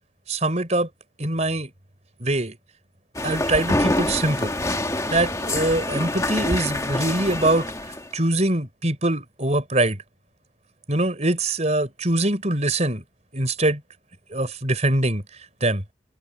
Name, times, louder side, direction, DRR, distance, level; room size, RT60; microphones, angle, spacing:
voice 1, 0.3-0.9 1.2-1.7 2.2-2.6 3.2-4.6 5.1-7.7 8.1-10.0 10.9-13.0 13.3-13.8 14.3-15.2 15.6-15.8, right 2 dB, 35° right, 4.6 m, -23 dB
sound 1, 3.1-8.1, left 1 dB, 15° left, 1.9 m, -26 dB
head